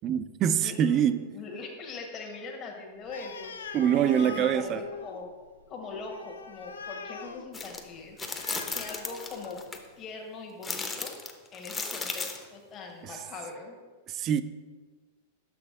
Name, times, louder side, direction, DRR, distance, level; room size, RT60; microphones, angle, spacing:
voice 1, 0.0-1.2 3.7-4.9 14.1-14.4, right 9 dB, 35° right, 0.4 m, -24 dB
voice 2, 0.6-1.0 1.3-3.5 4.0-5.3 5.7-8.2 8.5-9.6 10.0-11.1 11.5-13.8, left 4 dB, 35° left, 1.3 m, -41 dB
Animal, 3.0-9.8, left 5 dB, 85° left, 0.5 m, -43 dB
sound 1, 7.5-7.8 8.2-9.8 10.6-12.5, left 4 dB, 20° left, 0.8 m, -35 dB
6.4 x 5.9 x 3.7 m
hypercardioid pair, 110°, 0 cm